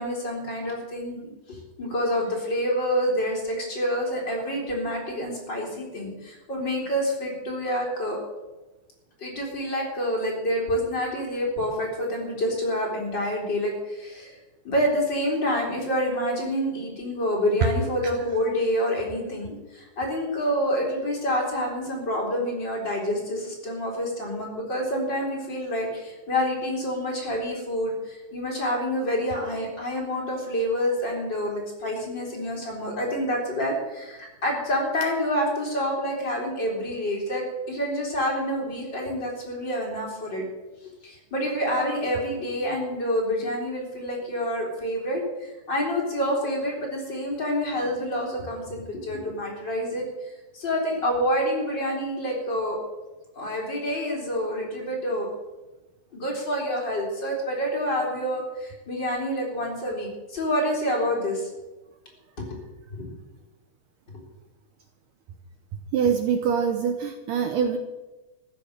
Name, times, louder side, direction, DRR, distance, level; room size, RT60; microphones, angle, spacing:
voice 1, 0.0-8.2 9.2-14.4 14.6-40.4 40.8-50.1 50.5-52.8 53.4-55.3 56.1-61.5 62.4-62.6 62.9-63.1, equal, 30° left, -2 dB, 4.0 m, -27 dB
voice 2, 65.9-67.8, right 7 dB, 70° right, 6 dB, 2.2 m, -24 dB
14.5 x 10.5 x 6.7 m, 1.1 s
omnidirectional pair, 4.3 m